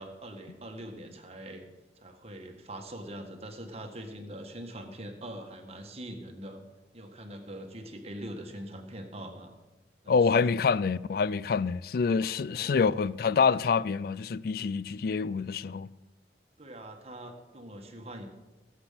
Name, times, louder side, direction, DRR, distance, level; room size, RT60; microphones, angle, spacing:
voice 1, 0.0-1.6 2.0-6.6 6.9-9.5 10.0-10.3 12.4-12.9 16.6-18.3, right 1 dB, 35° right, 1.6 m, -43 dB
voice 2, 10.1-15.9, left 5 dB, 55° left, 0.4 m, -26 dB
17.5 x 8.2 x 5.8 m
head